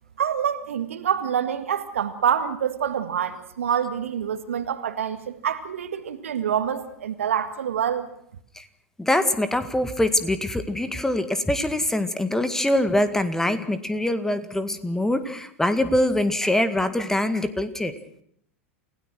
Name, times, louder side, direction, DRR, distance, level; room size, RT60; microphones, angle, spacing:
voice 1, 0.2-8.1, right 8 dB, 70° right, 10 dB, 1.9 m, -26 dB
voice 2, 9.0-17.9, left 1 dB, 5° left, 11 dB, 1.9 m, -24 dB
29.0 x 17.0 x 6.2 m, 0.68 s
figure-of-eight pair, 90°, 7 cm